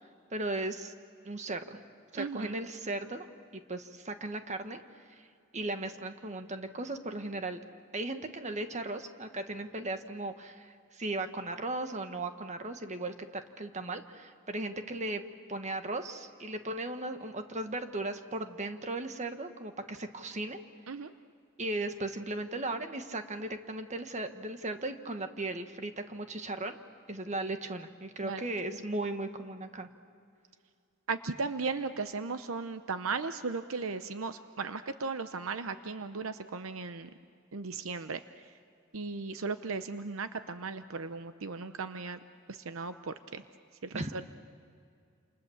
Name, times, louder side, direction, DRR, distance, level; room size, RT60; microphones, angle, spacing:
voice 1, 0.3-0.9 1.2-1.8 2.1-3.3 3.5-4.8 5.1-5.3 5.5-7.6 7.9-15.2 15.5-20.6 21.6-26.8 27.1-29.9 43.9-44.3, right 2 dB, 35° right, 7 dB, 1.5 m, -37 dB
voice 2, 2.2-2.6 20.9-21.1 28.2-28.4 31.1-37.1 37.5-38.5 38.9-42.2 42.5-43.4 43.8-44.2, right 4 dB, 70° right, 10 dB, 0.8 m, -36 dB
28.5 x 28.5 x 7.2 m, 2.4 s
head